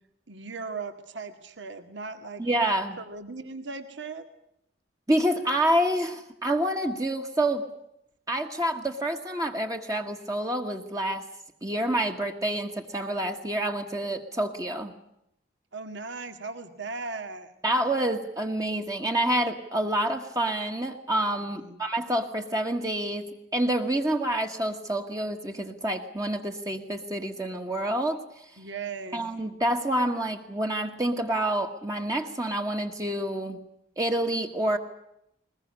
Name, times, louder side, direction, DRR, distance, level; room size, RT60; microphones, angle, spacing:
voice 1, 0.3-2.4 3.0-4.3 15.7-17.5 21.5-21.8 28.6-29.2, right 4 dB, 65° right, 8 dB, 2.0 m, -38 dB
voice 2, 2.4-3.0 5.1-7.7 8.3-11.3 11.6-14.9 17.6-28.5 29.1-33.6 34.0-34.8, right 1 dB, 20° right, 3 dB, 1.5 m, -28 dB
21.5 x 21.0 x 9.8 m, 0.78 s
head